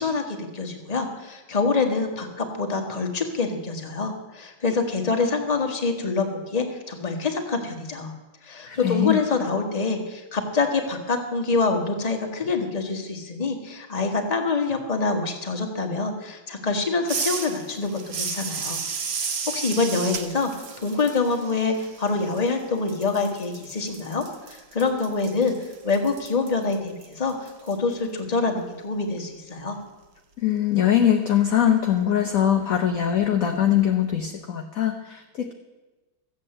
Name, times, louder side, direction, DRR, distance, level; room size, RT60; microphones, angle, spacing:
voice 1, 0.0-8.1 8.4-18.8 19.1-25.5 25.8-29.8, left 4 dB, 20° left, 3 dB, 1.3 m, -26 dB
voice 2, 8.7-9.2 30.4-35.5, left 10 dB, 55° left, 4 dB, 1.0 m, -22 dB
sound 1, 17.1-22.6 22.9-27.7, right 5 dB, 45° right, 0.9 m, -33 dB
14.0 x 8.1 x 7.7 m, 1.1 s
omnidirectional pair, 2.2 m